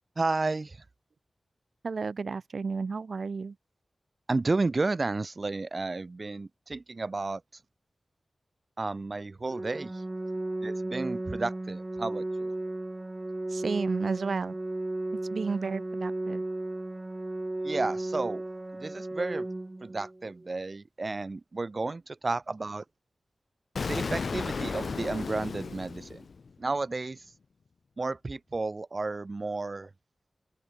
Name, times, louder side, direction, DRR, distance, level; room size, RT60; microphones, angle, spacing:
voice 1, 0.2-0.8 4.3-7.4 8.8-10.0 10.6-12.5 17.6-18.4 18.7-19.5 19.8-22.8 23.8-26.3 26.6-27.3 28.0-29.9, right 3 dB, 50° right, 2.1 m, -32 dB
voice 2, 1.8-3.5 13.5-14.5 15.3-16.4, right 4 dB, 75° right, 1.7 m, -32 dB
Organ, 9.5-20.5, right 2 dB, 30° right, 3.5 m, -35 dB
Explosion, 23.8-26.7, left 4 dB, 75° left, 2.7 m, -34 dB
open air
cardioid pair, 45°, 0 cm